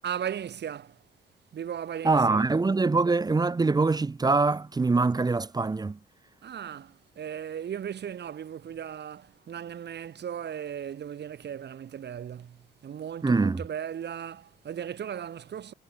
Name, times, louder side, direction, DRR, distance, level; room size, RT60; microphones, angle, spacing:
voice 1, 0.0-1.0 1.5-2.5 6.4-15.7, right 9 dB, 60° right, 4.3 m, -37 dB
voice 2, 2.0-6.0 13.2-13.6, right 3 dB, 20° right, 0.8 m, -24 dB
cardioid pair, 90°, 20 cm